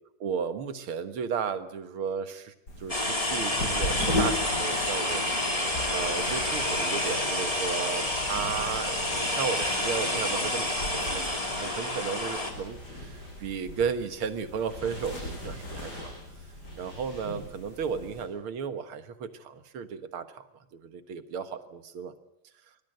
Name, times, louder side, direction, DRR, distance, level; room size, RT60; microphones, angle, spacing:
voice 1, 0.2-5.2 5.9-16.1 16.8-22.1, right 6 dB, 80° right, 9 dB, 2.3 m, -34 dB
sound 1, 2.7-18.3, left 1 dB, 50° left, 6.4 m, -38 dB
sound 2, 2.9-12.5, left 1 dB, 15° left, 2.9 m, -29 dB
25.0 x 20.0 x 7.9 m, 0.82 s
omnidirectional pair, 2.3 m